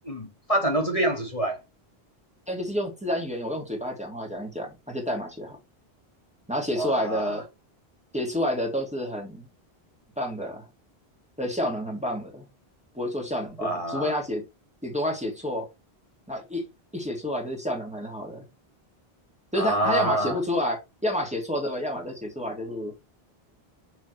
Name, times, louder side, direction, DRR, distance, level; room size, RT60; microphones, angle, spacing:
voice 1, 0.0-1.6 6.7-7.4 13.6-14.1 19.6-20.4, right 1 dB, 35° left, 1.9 m, -26 dB
voice 2, 2.5-5.6 6.5-7.5 8.1-9.5 10.2-10.7 11.4-12.4 12.9-14.4 14.8-15.7 16.3-16.7 16.9-18.4 19.5-22.9, left 1 dB, 5° right, 2.3 m, -29 dB
6.5 x 6.3 x 3.3 m
omnidirectional pair, 1.1 m